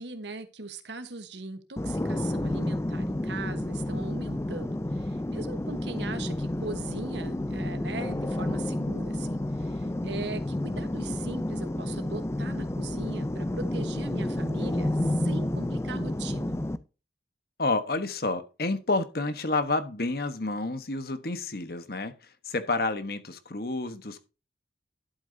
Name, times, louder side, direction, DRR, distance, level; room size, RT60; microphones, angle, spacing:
voice 1, 0.0-16.6, right 3 dB, 75° right, 1.3 m, -40 dB
sound 1, 1.8-16.8, left 1 dB, 15° left, 0.4 m, -30 dB
voice 2, 17.6-24.2, left 2 dB, 55° left, 1.2 m, -29 dB
11.5 x 8.4 x 2.7 m
head